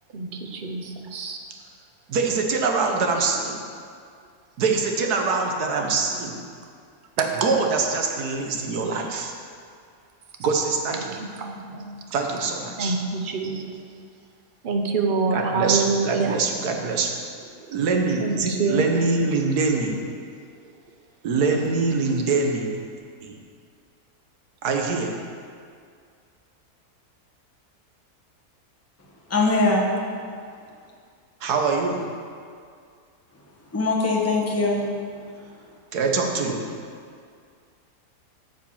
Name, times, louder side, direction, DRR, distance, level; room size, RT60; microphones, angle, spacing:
voice 1, 0.1-1.4 11.4-11.9 12.8-13.6 14.6-16.3 18.2-18.9, right 4 dB, 45° right, 4 dB, 0.7 m, -26 dB
voice 2, 2.1-3.6 4.6-6.4 7.2-9.3 10.4-11.2 12.1-13.0 15.3-17.1 17.7-20.0 21.2-22.7 23.2-23.3 24.6-25.2 31.4-32.1 35.9-36.7, right 4 dB, 75° right, 2 dB, 1.5 m, -24 dB
voice 3, 29.3-29.9 33.7-34.8, left 3 dB, 10° left, -2 dB, 1.0 m, -21 dB
9.2 x 5.1 x 7.2 m, 2.2 s
omnidirectional pair, 1.7 m